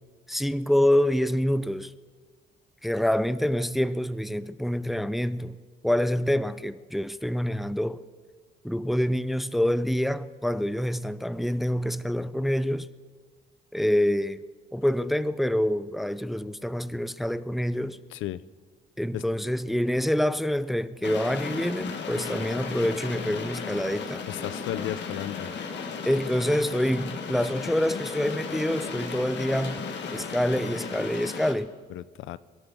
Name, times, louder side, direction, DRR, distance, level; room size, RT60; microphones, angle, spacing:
voice 1, 0.3-1.9 2.8-8.0 8.6-12.9 13.7-14.4 14.7-18.0 19.0-24.2 26.1-29.8 30.1-31.7, equal, ahead, 0.5 m, -26 dB
voice 2, 18.1-18.4 19.1-19.2 24.3-25.5 31.9-32.4, left 14 dB, 80° left, 0.5 m, -34 dB
sound 1, 21.0-31.5, left 5 dB, 65° left, 1.5 m, -35 dB
25.0 x 11.5 x 3.6 m
cardioid pair, 90°, 20 cm